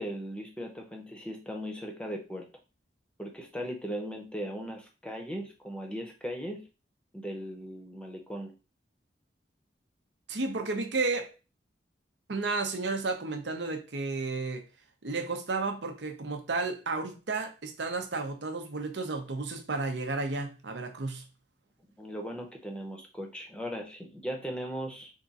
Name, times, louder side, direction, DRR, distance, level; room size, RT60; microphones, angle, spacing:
voice 1, 0.0-2.5 3.2-6.6 7.1-8.5 22.0-25.1, equal, 5° left, 0.7 m, -38 dB
voice 2, 10.3-11.3 12.3-14.6 15.0-21.2, right 3 dB, 75° right, 0.7 m, -32 dB
3.7 x 2.4 x 4.0 m
head